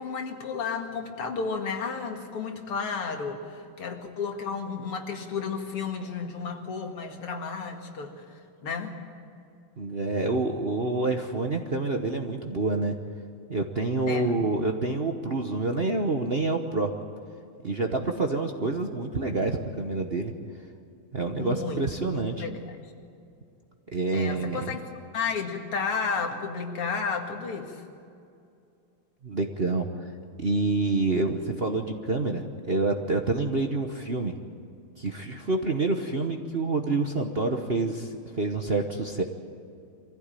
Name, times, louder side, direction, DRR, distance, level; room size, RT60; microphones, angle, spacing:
voice 1, 0.0-8.1 8.6-9.0 14.1-14.3 21.4-22.8 24.1-24.8 25.1-27.8, left 5 dB, 85° left, 3 dB, 2.9 m, -32 dB
voice 2, 9.8-12.9 13.5-16.9 17.6-20.3 21.1-22.5 23.9-24.7 29.2-29.8 30.4-34.3 35.0-39.2, right 3 dB, 40° right, 4 dB, 0.9 m, -27 dB
24.0 x 15.5 x 9.1 m, 2.5 s
omnidirectional pair, 2.4 m